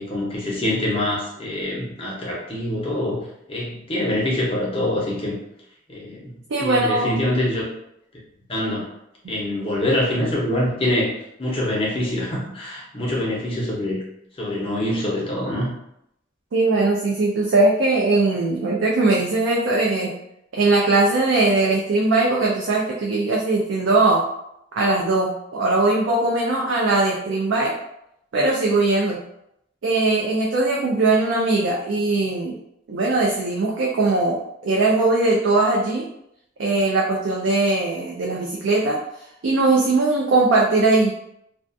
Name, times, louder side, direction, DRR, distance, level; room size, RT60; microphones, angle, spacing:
voice 1, 0.0-5.4 5.9-6.3 6.6-7.7 8.5-8.9 9.3-14.0 14.4-15.8, left 1 dB, 30° left, -4 dB, 0.7 m, -25 dB
voice 2, 6.5-7.1 16.5-20.1 20.5-24.2 24.7-27.7 28.3-29.2 29.8-32.6 32.9-36.0 36.6-39.0 39.4-41.1, right 2 dB, 85° right, -3 dB, 0.4 m, -20 dB
2.4 x 2.3 x 2.5 m, 0.79 s
head